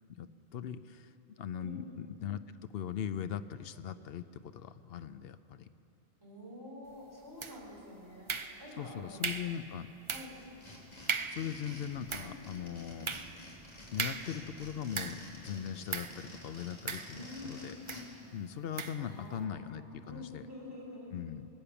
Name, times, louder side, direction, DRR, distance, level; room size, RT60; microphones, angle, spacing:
voice 1, 0.2-1.1 1.4-2.4 2.7-5.6 8.8-9.9 11.3-13.1 13.9-17.7 18.3-20.4 21.1-21.5, left 9 dB, 70° left, 12 dB, 0.8 m, -40 dB
voice 2, 1.6-2.1 6.2-9.2 10.1-10.4 12.1-12.4 17.1-17.8 19.0-21.1, left 1 dB, 20° right, -5 dB, 4.1 m, -48 dB
sound 1, 7.4-7.8 8.3-8.8 9.2-9.6 10.1-10.4 10.7-10.8 11.1-11.5 11.9-15.4 15.9-16.2 16.9-17.5 17.9-18.1 18.8-19.1, right 5 dB, 40° right, 0.5 m, -38 dB
sound 2, 10.3-18.0, left 1 dB, 40° left, 2.6 m, -50 dB
23.0 x 8.5 x 7.0 m, 2.9 s
omnidirectional pair, 1.1 m